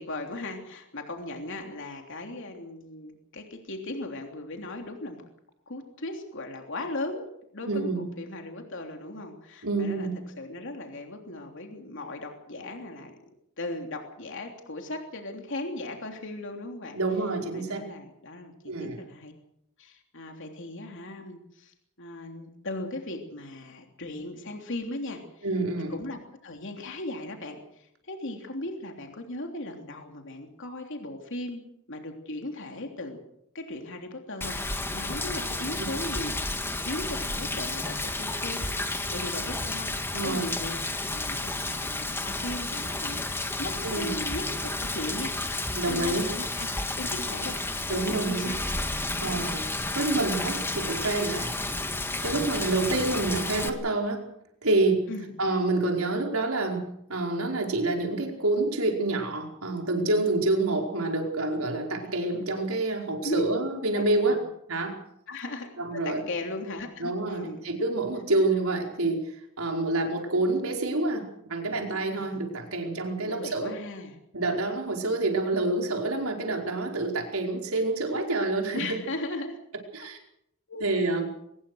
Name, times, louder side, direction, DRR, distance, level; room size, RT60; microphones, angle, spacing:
voice 1, 0.0-5.3 5.7-7.3 7.5-10.1 10.4-13.1 13.6-17.0 17.5-18.5 18.8-19.3 19.8-25.5 25.9-33.2 33.5-36.4 36.8-39.9 40.2-48.6 55.1-55.3 63.2-63.5 63.9-64.4 65.3-67.6 72.1-72.4 73.2-74.2 78.7-79.6 80.0-80.1 80.7-81.3, left 2 dB, 60° left, 3 dB, 3.3 m, -37 dB
voice 2, 7.7-8.0 9.6-10.2 16.9-17.8 18.7-19.0 25.4-25.9 40.1-40.5 43.8-44.1 45.7-46.2 47.9-48.5 49.2-49.7 49.9-51.5 52.2-54.2 54.6-55.0 55.4-64.4 64.7-65.0 65.8-66.2 67.0-73.7 74.3-79.0 79.9-80.2 80.8-81.3, right 2 dB, 80° right, 2 dB, 4.9 m, -27 dB
Rain, 34.4-53.7, left 2 dB, 10° left, 1.9 m, -31 dB
23.0 x 20.5 x 6.5 m, 0.75 s
head